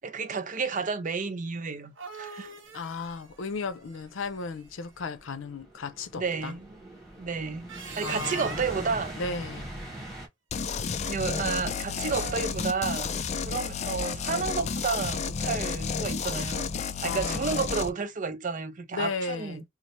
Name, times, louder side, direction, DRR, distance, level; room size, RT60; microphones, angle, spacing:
voice 1, 0.0-2.5 6.2-6.8 7.2-7.7 8.0-9.2 11.1-13.1 13.4-16.7 17.0-19.6, right 5 dB, 40° right, 0.5 m, -31 dB
sound 1, 1.7-4.8 7.5-9.0 11.9-12.8, right 5 dB, 90° right, 1.1 m, -43 dB
voice 2, 2.7-6.6 8.0-8.6 9.2-9.7 17.0-17.6 18.9-19.6, left 4 dB, 90° left, 0.6 m, -35 dB
sound 2, 3.2-10.3, right 1 dB, ahead, 1.2 m, -42 dB
sound 3, 10.5-17.9, left 5 dB, 35° left, 0.3 m, -31 dB
3.1 x 2.0 x 4.1 m
head